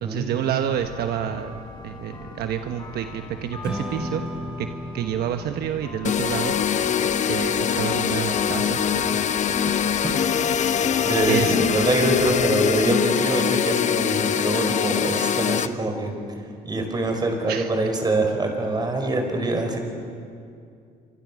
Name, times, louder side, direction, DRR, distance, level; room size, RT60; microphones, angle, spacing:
voice 1, 0.0-4.2 4.6-4.7 4.9-6.5 7.0-9.7 11.2-11.5 17.5-17.7, right 10 dB, 70° right, 7 dB, 1.2 m, -29 dB
sound 1, 0.7-12.8, left 2 dB, 25° left, 5.0 m, -40 dB
Strum, 3.6-9.9, left 1 dB, 5° right, 2.8 m, -38 dB
sound 2, 6.0-15.7, left 8 dB, 45° left, 0.9 m, -23 dB
voice 2, 11.0-16.1 16.6-19.8, right 2 dB, 25° right, 4 dB, 5.1 m, -24 dB
27.5 x 25.0 x 6.4 m, 2.4 s
cardioid pair, 110°, 17 cm